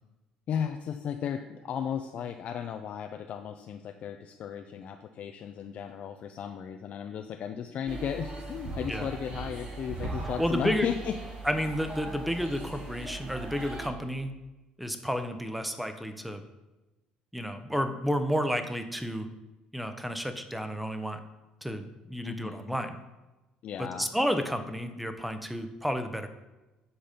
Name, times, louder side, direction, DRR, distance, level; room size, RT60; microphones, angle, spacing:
voice 1, 0.5-11.1 22.2-22.8 23.6-24.1, left 8 dB, 55° left, 5 dB, 0.4 m, -35 dB
sound 1, 7.9-13.9, right 2 dB, 45° right, 1.8 m, -39 dB
voice 2, 10.4-10.9 11.4-14.3 14.8-16.4 17.3-19.3 19.7-21.2 21.6-23.0 23.8-26.3, equal, ahead, 8 dB, 0.8 m, -31 dB
7.9 x 4.1 x 5.1 m, 1.1 s
supercardioid pair, 85°, 3 cm